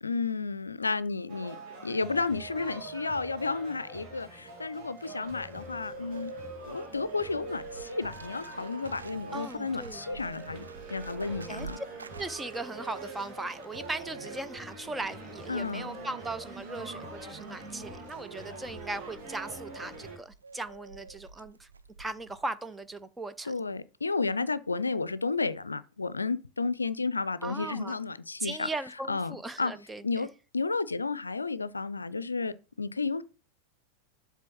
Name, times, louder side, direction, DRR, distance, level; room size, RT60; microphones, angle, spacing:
voice 1, 0.0-1.6 1.8-6.3 6.6-11.8 15.5-15.9 23.4-28.7 29.1-29.7 30.0-30.3 30.5-33.2, left 4 dB, 80° left, 0.4 m, -32 dB
sound 1, 1.3-20.2, right 3 dB, 45° right, 2.2 m, -44 dB
Bird, 4.6-22.5 22.7-23.0, right 4 dB, 75° right, 0.4 m, -49 dB
voice 2, 9.3-10.0 11.5-11.7 12.2-21.7 22.0-23.5 27.4-28.0 28.4-30.0, right 2 dB, 10° right, 0.5 m, -38 dB
7.5 x 3.4 x 6.0 m
figure-of-eight pair, 90°, 0 cm